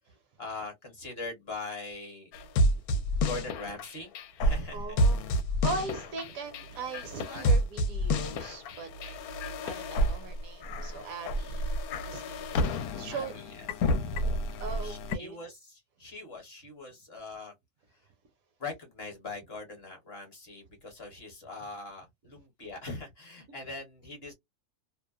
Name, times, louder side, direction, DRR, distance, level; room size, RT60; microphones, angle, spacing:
voice 1, 0.4-2.3 3.2-4.1 4.4-5.0 6.9-7.5 9.0-9.6 13.1-13.9 14.8-17.5 17.9-18.1 18.6-24.3, left 3 dB, 45° left, 1.0 m, -42 dB
sound 1, 2.3-15.2, equal, 75° left, 1.0 m, -29 dB
voice 2, 2.7-3.0 4.7-8.9 9.6-11.7 12.0-13.3 14.6-15.4, right 4 dB, 70° right, 1.1 m, -39 dB
2.7 x 2.1 x 2.3 m
omnidirectional pair, 1.6 m